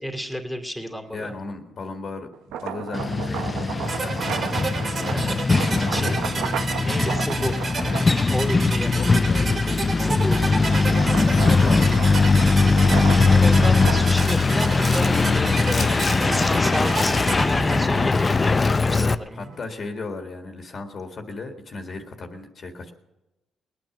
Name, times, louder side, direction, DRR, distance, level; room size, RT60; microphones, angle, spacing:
voice 1, 0.0-1.3 5.0-6.1 6.8-7.8 8.3-9.2 10.0-10.5 11.0-11.3 13.2-19.6, equal, ahead, 2 dB, 2.5 m, -31 dB
voice 2, 1.1-5.3 5.8-6.5 8.8-9.6 11.2-12.3 18.9-22.9, left 3 dB, 45° left, 4 dB, 1.8 m, -36 dB
sound 1, 2.3-8.9 9.5-16.6, right 8 dB, 85° right, 0.8 m, -34 dB
Truck, 2.9-19.1, left 4 dB, 30° left, 0.6 m, -20 dB
sound 2, 3.9-18.8, right 3 dB, 45° right, 2.9 m, -31 dB
20.0 x 9.1 x 6.0 m, 1.0 s
cardioid pair, 90°, 0 cm